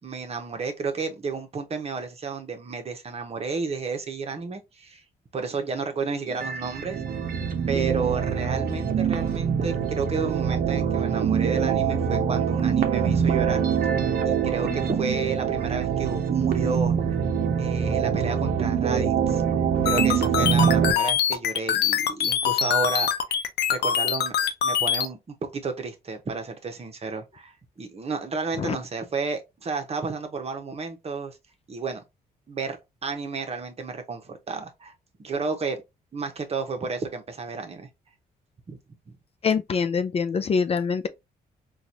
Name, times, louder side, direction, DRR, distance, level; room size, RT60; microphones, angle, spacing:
voice 1, 0.0-5.0 5.3-7.0 7.7-13.6 14.3-17.0 17.6-19.4 19.8-23.4 23.7-31.4 31.7-32.0 32.5-32.8 33.0-34.9 35.2-35.8 36.1-37.9 38.7-38.8, right 4 dB, 40° right, 0.9 m, -32 dB
sound 1, 6.3-20.9, right 7 dB, 60° right, 0.7 m, -24 dB
sound 2, 19.9-25.1, left 9 dB, 85° left, 0.6 m, -24 dB
voice 2, 39.4-41.1, left 5 dB, 35° left, 0.4 m, -24 dB
3.9 x 2.4 x 2.8 m
cardioid pair, 95°, 17 cm